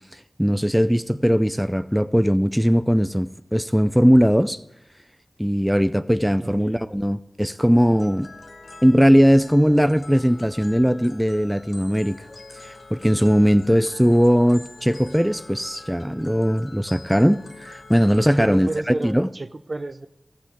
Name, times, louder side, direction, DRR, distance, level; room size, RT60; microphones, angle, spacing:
voice 1, 0.4-4.6 5.4-8.3 8.8-12.2 12.6-19.3, equal, 5° right, 0.4 m, -19 dB
voice 2, 6.3-7.0 18.4-20.1, right 2 dB, 50° right, 0.7 m, -32 dB
sound 1, 7.9-18.8, left 3 dB, 65° left, 1.1 m, -45 dB
14.0 x 6.1 x 8.4 m
cardioid pair, 45°, 0 cm